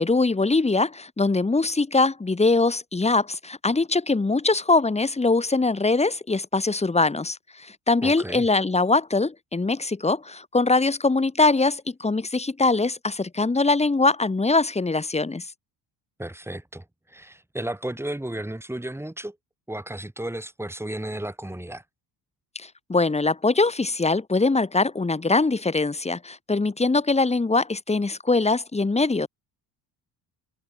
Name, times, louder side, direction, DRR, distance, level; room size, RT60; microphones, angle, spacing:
voice 1, 0.0-15.5 22.6-29.3, left 3 dB, 15° left, 2.1 m, -22 dB
voice 2, 8.0-8.5 16.2-19.4 19.7-21.8, right 1 dB, 5° right, 4.9 m, -33 dB
cardioid pair, 120°, 41 cm